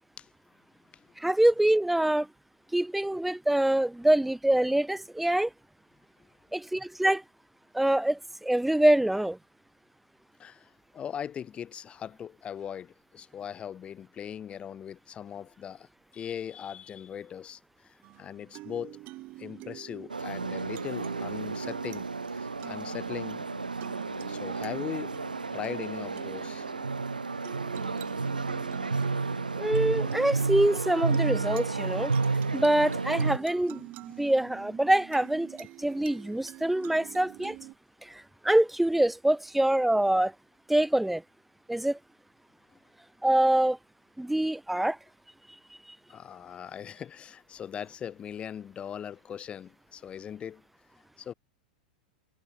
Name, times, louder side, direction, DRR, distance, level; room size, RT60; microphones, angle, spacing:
voice 1, 1.2-2.3 2.7-5.5 6.5-7.2 7.7-9.4 29.6-32.1 32.5-33.9 34.2-35.5 35.8-37.6 38.0-40.3 40.7-41.2 41.7-42.0 43.2-43.8 44.2-45.0, right 1 dB, 5° right, 0.3 m, -25 dB
voice 2, 10.4-15.9 16.1-19.0 19.4-22.1 22.3-23.4 24.3-25.2 25.5-26.7 46.1-50.6 51.2-51.3, left 9 dB, 25° left, 1.2 m, -40 dB
sound 1, 18.0-37.7, right 19 dB, 40° right, 7.0 m, -46 dB
sound 2, 20.1-33.4, right 4 dB, 90° right, 0.6 m, -31 dB
figure-of-eight pair, 95°, 4 cm